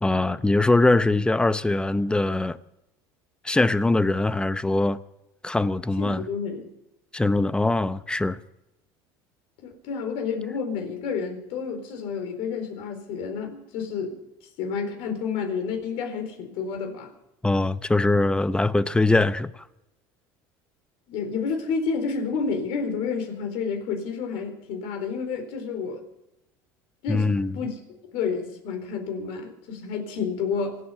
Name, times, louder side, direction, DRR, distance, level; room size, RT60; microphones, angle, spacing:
voice 1, 0.0-2.6 3.4-5.0 5.4-6.3 7.1-8.4 17.4-19.6 27.1-27.6, left 2 dB, 10° left, 0.7 m, -22 dB
voice 2, 6.0-6.6 9.6-14.2 14.6-17.1 21.1-26.0 27.0-27.7 28.1-30.8, left 5 dB, 70° left, 4.3 m, -30 dB
26.5 x 8.9 x 5.7 m
supercardioid pair, 110°, 11 cm